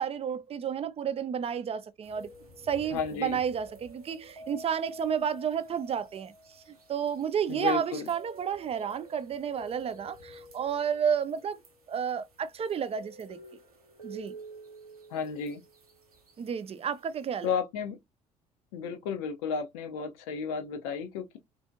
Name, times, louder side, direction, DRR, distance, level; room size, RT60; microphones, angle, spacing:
voice 1, 0.0-2.3 2.6-11.6 11.9-13.4 14.0-14.3 16.4-17.5, right 8 dB, 35° right, 0.5 m, -31 dB
sound 1, 2.0-17.5, right 1 dB, 90° right, 0.7 m, -50 dB
voice 2, 2.9-3.4 7.5-8.0 15.1-15.6 17.4-18.0 18.7-21.4, left 6 dB, 70° left, 0.5 m, -33 dB
3.4 x 2.5 x 2.5 m
figure-of-eight pair, 50°, 18 cm